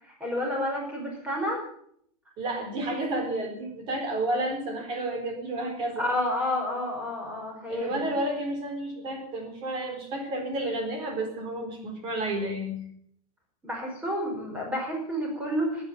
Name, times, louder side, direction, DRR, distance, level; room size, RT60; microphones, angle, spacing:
voice 1, 0.0-1.6 6.0-8.1 13.6-15.8, left 1 dB, 5° right, 0 dB, 4.9 m, -30 dB
voice 2, 2.4-6.1 7.7-12.8, right 1 dB, 25° right, 4 dB, 4.2 m, -31 dB
19.5 x 9.6 x 7.3 m, 0.67 s
supercardioid pair, 180°, 19 cm